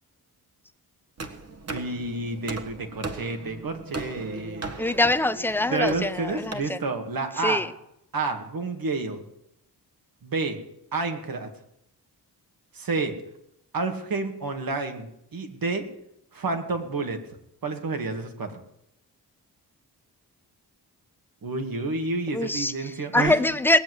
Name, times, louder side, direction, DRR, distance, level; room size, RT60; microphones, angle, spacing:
sound 1, 1.2-6.5, right 3 dB, 40° right, 1.7 m, -38 dB
voice 1, 1.7-5.0 5.7-7.6 8.1-9.2 10.2-10.6 10.9-11.5 12.7-13.1 13.7-15.8 16.3-17.2 17.6-18.6 21.4-23.4, right 3 dB, 60° right, 6 dB, 2.2 m, -29 dB
voice 2, 4.8-6.8 7.4-7.7 22.3-22.7 23.1-23.8, left 2 dB, 5° left, 12 dB, 0.8 m, -23 dB
19.0 x 7.6 x 8.0 m, 0.79 s
cardioid pair, 80°, 39 cm